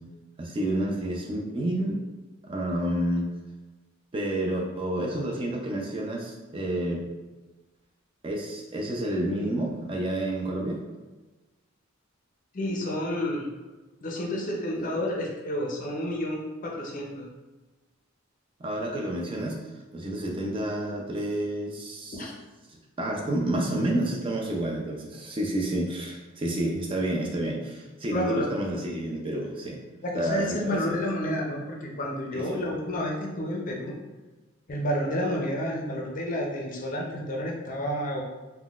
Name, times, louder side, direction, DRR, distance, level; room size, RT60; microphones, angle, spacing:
voice 1, 0.4-2.0 2.4-3.3 4.1-7.1 8.2-10.8 14.7-14.9 18.6-22.2 22.7-29.8 30.1-31.0 32.3-32.6, right 1 dB, 25° right, -1 dB, 0.4 m, -30 dB
voice 2, 12.5-13.5 14.0-17.3 22.1-22.3 28.1-28.5 30.0-33.9 34.7-38.2, left 1 dB, 40° left, -1 dB, 0.5 m, -30 dB
3.7 x 2.1 x 2.3 m, 1.2 s
head